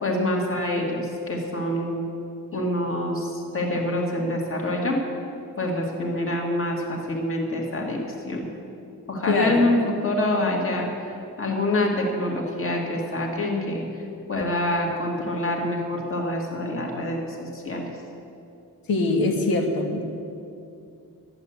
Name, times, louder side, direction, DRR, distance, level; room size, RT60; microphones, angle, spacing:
voice 1, 0.0-2.0 2.5-5.0 5.6-8.0 8.3-8.5 9.1-10.9 11.4-13.8 14.3-17.9, left 1 dB, 35° left, 0 dB, 2.1 m, -26 dB
voice 2, 9.3-9.6 18.9-20.0, left 3 dB, 75° left, 2 dB, 1.7 m, -23 dB
11.5 x 8.0 x 9.4 m, 2.6 s
wide cardioid pair, 170°, 36 cm